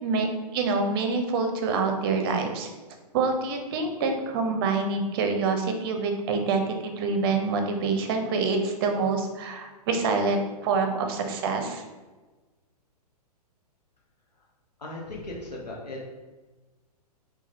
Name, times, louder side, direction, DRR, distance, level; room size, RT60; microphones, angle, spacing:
voice 1, 0.0-2.7 3.1-11.8, right 4 dB, 35° right, 4 dB, 0.6 m, -26 dB
voice 2, 14.8-16.0, left 1 dB, 80° left, -3 dB, 0.9 m, -37 dB
4.5 x 2.3 x 3.5 m, 1.2 s
figure-of-eight pair, 115°, 21 cm